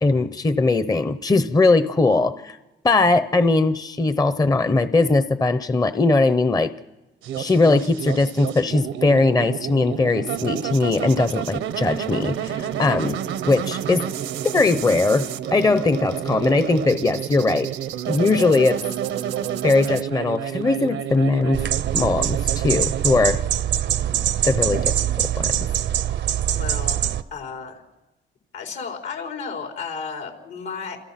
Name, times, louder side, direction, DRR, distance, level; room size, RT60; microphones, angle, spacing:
voice 1, 0.0-2.6 2.8-6.7 7.4-13.2 13.5-14.1 14.5-17.7 18.1-18.8 19.6-21.6 21.9-23.4 24.4-25.6, left 3 dB, 20° left, 12 dB, 0.9 m, -20 dB
sound 1, 7.2-23.3, right 10 dB, 80° right, 1.1 m, -29 dB
sound 2, 21.5-27.2, right 10 dB, 60° right, 0.8 m, -23 dB
voice 2, 26.5-27.8 28.5-31.0, left 5 dB, 75° left, 2 dB, 4.8 m, -33 dB
28.5 x 28.0 x 5.9 m, 1.1 s
cardioid pair, 90°, 20 cm